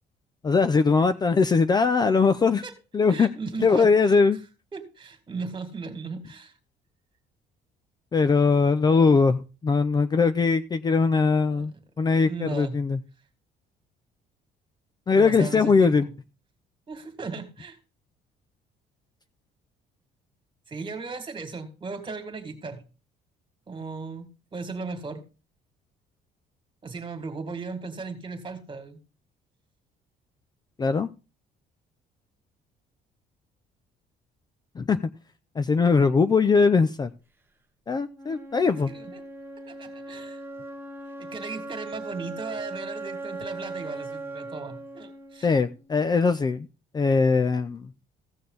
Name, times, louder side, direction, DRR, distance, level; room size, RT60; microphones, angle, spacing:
voice 1, 0.4-2.6 2.9-3.3 3.6-4.4 8.1-13.0 15.1-16.1 30.8-31.1 34.8-35.0 35.6-37.1 37.9-38.9 45.4-46.7 46.9-47.9, left 4 dB, 25° left, 11 dB, 0.5 m, -21 dB
voice 2, 3.1-4.2 4.7-6.5 11.5-11.7 12.3-12.7 15.1-16.1 16.9-17.8 20.7-22.8 23.7-25.2 26.8-29.0 38.9-39.2 39.7-40.4 41.2-45.6, right 4 dB, 30° right, 8 dB, 2.1 m, -37 dB
Wind instrument woodwind instrument, 38.1-46.2, right 2 dB, 15° right, 1.0 m, -39 dB
15.5 x 6.6 x 4.0 m, 0.32 s
cardioid pair, 110°, 17 cm